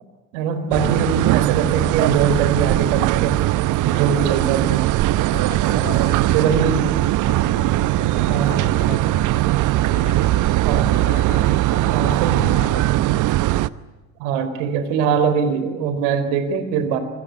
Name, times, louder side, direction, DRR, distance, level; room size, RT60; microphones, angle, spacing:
voice 1, 0.3-3.4 3.9-4.7 5.6-6.0 6.3-6.9 8.2-8.6 10.6-11.0 11.9-12.5 14.2-17.0, right 6 dB, 65° right, 10 dB, 4.3 m, -22 dB
sound 1, 0.7-13.7, right 16 dB, 50° right, 1.0 m, -19 dB
voice 2, 3.7-4.8 5.3-9.5 9.8-13.3, left 6 dB, 55° left, 6 dB, 7.1 m, -36 dB
27.0 x 23.0 x 8.2 m, 1.2 s
figure-of-eight pair, 65°, 41 cm